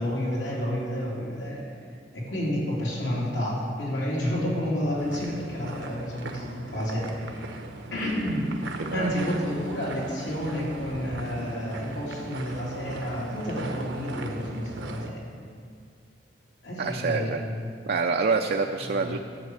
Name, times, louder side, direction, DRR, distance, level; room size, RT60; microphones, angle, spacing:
voice 1, 0.0-1.6 2.1-7.5 7.9-8.4 8.9-15.2 16.6-17.4 18.8-19.2, equal, 75° left, -5 dB, 3.4 m, -30 dB
sound 1, 5.0-15.1, right 2 dB, 85° right, 1.0 m, -39 dB
voice 2, 8.8-9.3 16.8-17.4 17.9-19.2, right 4 dB, 55° right, 4 dB, 0.4 m, -27 dB
11.5 x 8.3 x 6.4 m, 2.2 s
head